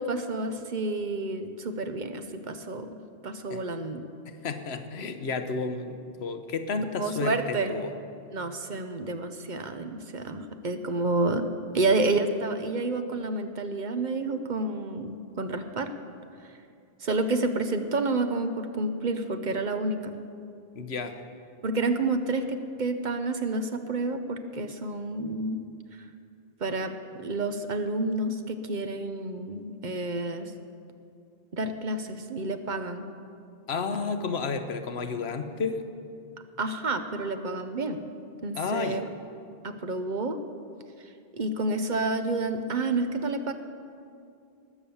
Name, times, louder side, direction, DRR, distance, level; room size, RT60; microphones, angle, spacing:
voice 1, 0.0-3.0 3.2-4.0 7.0-7.7 8.3-15.9 17.0-20.1 21.6-25.6 25.9-26.0 26.6-26.9 27.2-30.5 31.5-33.1 36.6-38.0 38.4-39.0 39.6-40.4 41.4-43.5, right 2 dB, 50° right, 8 dB, 0.8 m, -29 dB
voice 2, 4.3-7.9 20.7-21.2 33.7-35.8 38.5-39.0, left 4 dB, 80° left, 8 dB, 1.1 m, -31 dB
20.0 x 7.0 x 7.1 m, 2.4 s
omnidirectional pair, 1.1 m